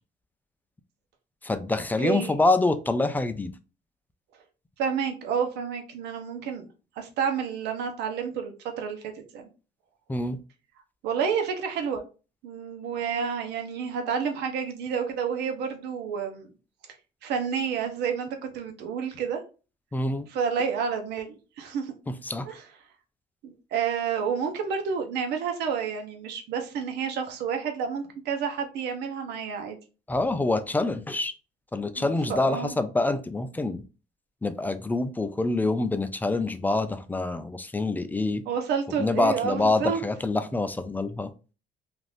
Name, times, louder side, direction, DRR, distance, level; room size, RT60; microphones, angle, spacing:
voice 1, 1.4-3.5 10.1-10.4 19.9-20.3 22.2-22.5 30.1-31.3 31.7-33.8 34.4-38.4 39.0-41.3, left 2 dB, 10° left, 0.3 m, -26 dB
voice 2, 2.0-2.4 4.8-6.7 7.0-9.4 11.0-12.0 12.4-16.5 17.2-19.4 20.3-21.9 22.5-22.6 23.4-29.8 32.0-32.7 38.5-40.0, right 6 dB, 80° right, 0.8 m, -30 dB
2.5 x 2.5 x 3.3 m
cardioid pair, 110°, 17 cm